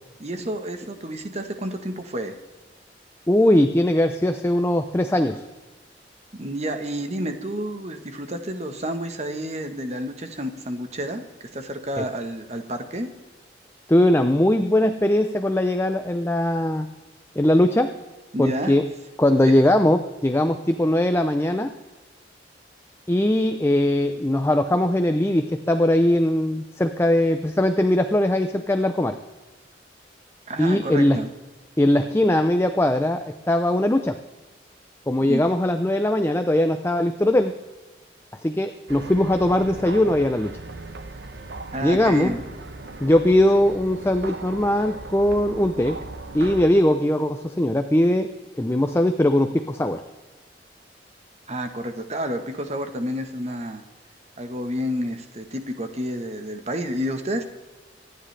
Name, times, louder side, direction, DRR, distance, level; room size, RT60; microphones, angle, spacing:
voice 1, 0.2-2.3 6.4-11.2 11.5-13.1 18.3-18.8 19.4-19.5 30.5-31.3 35.2-35.4 41.7-42.4 51.5-53.8 54.4-57.5, equal, 35° right, 7 dB, 1.2 m, -30 dB
voice 2, 3.3-5.4 12.0-12.1 13.9-16.9 17.4-17.9 18.4-18.8 19.2-21.7 23.1-29.2 30.6-31.2 31.8-34.2 35.1-37.5 38.4-40.5 41.8-42.3 43.0-46.0 46.3-48.3 48.6-50.0, left 1 dB, 15° left, 7 dB, 0.5 m, -20 dB
sound 1, 38.9-46.7, right 3 dB, 65° right, 0.9 m, -38 dB
24.5 x 9.9 x 3.3 m, 1.2 s
head